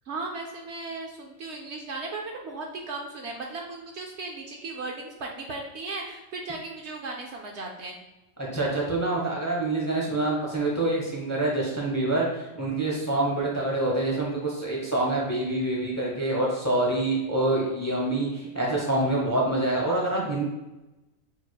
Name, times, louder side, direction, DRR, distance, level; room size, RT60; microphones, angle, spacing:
voice 1, 0.1-8.0 13.3-13.5, right 3 dB, 65° right, 1 dB, 0.9 m, -36 dB
voice 2, 8.5-20.4, right 2 dB, 15° left, -3 dB, 0.8 m, -26 dB
6.4 x 3.2 x 2.3 m, 1.0 s
omnidirectional pair, 1.4 m